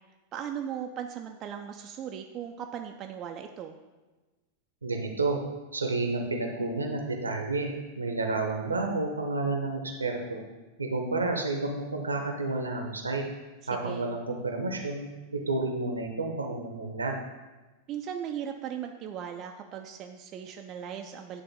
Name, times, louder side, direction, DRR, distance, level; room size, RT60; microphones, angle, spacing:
voice 1, 0.3-3.8 13.7-14.1 17.9-21.4, right 8 dB, 35° right, 4 dB, 0.4 m, -38 dB
voice 2, 4.8-5.4 5.7-10.4 10.8-13.2 13.7-15.1 15.3-17.1, right 3 dB, 80° right, 3 dB, 0.8 m, -30 dB
9.3 x 3.4 x 3.7 m, 1.2 s
figure-of-eight pair, 90°, 0 cm